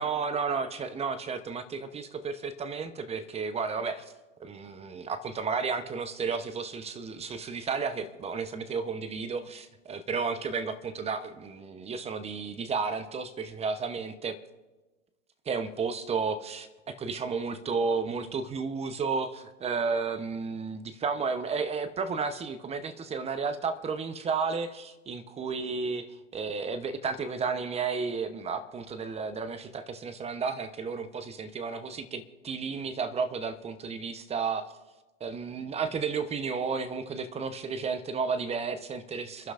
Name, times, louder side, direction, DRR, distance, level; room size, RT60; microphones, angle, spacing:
voice 1, 0.0-4.1 4.4-14.4 15.5-34.6 35.2-39.5, right 5 dB, 15° right, 11 dB, 0.8 m, -32 dB
29.5 x 11.5 x 2.5 m, 1.2 s
hypercardioid pair, 115°, 38 cm